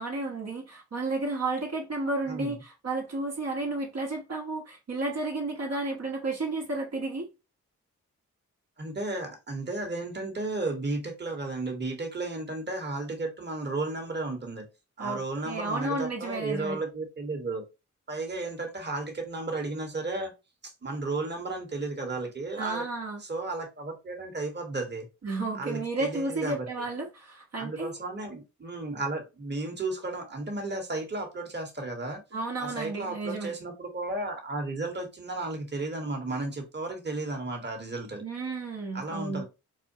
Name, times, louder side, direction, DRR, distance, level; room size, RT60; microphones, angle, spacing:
voice 1, 0.0-7.3 15.0-16.8 22.6-23.2 25.2-28.0 32.3-33.5 38.2-39.4, right 2 dB, 55° right, 1.1 m, -32 dB
voice 2, 8.8-14.6 15.0-17.6 18.1-20.3 20.8-22.9 23.2-25.1 25.5-26.7 27.6-32.2 32.6-38.2 38.9-39.4, right 2 dB, 35° right, 1.3 m, -33 dB
4.1 x 2.2 x 2.7 m
cardioid pair, 50°, 31 cm